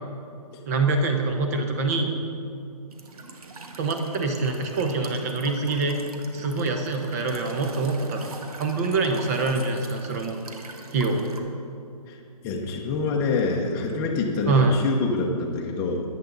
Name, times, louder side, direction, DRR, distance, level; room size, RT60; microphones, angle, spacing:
voice 1, 0.7-2.1 3.8-6.0 6.3-8.3 8.6-10.4 10.9-11.2 14.5-14.8, right 3 dB, 25° right, 5 dB, 1.0 m, -25 dB
Walk footsteps / Chirp tweet / Stream, 2.9-11.4, right 3 dB, 70° right, 1.6 m, -42 dB
voice 2, 12.4-16.0, left 3 dB, 15° left, -1 dB, 1.0 m, -26 dB
22.5 x 8.6 x 4.0 m, 2.4 s
hypercardioid pair, 160°, 20 cm